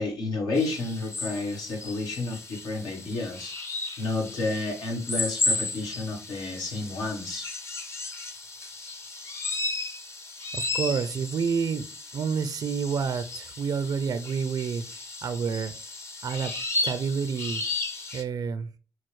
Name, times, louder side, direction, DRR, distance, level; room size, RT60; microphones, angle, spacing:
voice 1, 0.0-3.5 4.0-7.5, left 3 dB, 90° left, 1.3 m, -31 dB
sound 1, 0.5-18.2, left 2 dB, 40° left, 0.7 m, -34 dB
voice 2, 10.5-11.8 12.1-14.8 15.2-15.7 16.2-16.5 16.8-17.6 18.1-18.7, right 6 dB, 70° right, 0.4 m, -28 dB
6.1 x 2.0 x 3.1 m
cardioid pair, 80°, 7 cm